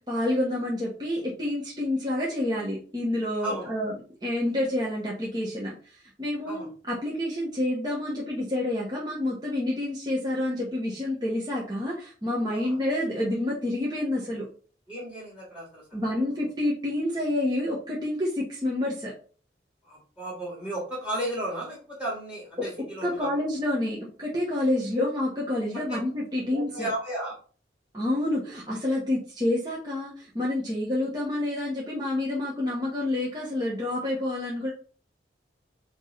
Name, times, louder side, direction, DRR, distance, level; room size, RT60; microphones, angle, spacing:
voice 1, 0.0-3.9 4.2-14.5 15.9-19.1 23.0-26.9 27.9-34.7, left 1 dB, 20° right, -5 dB, 1.5 m, -28 dB
voice 2, 14.9-15.8 19.8-23.3 26.3-27.4, right 1 dB, 5° right, -4 dB, 2.4 m, -34 dB
8.6 x 3.3 x 4.1 m, 0.41 s
head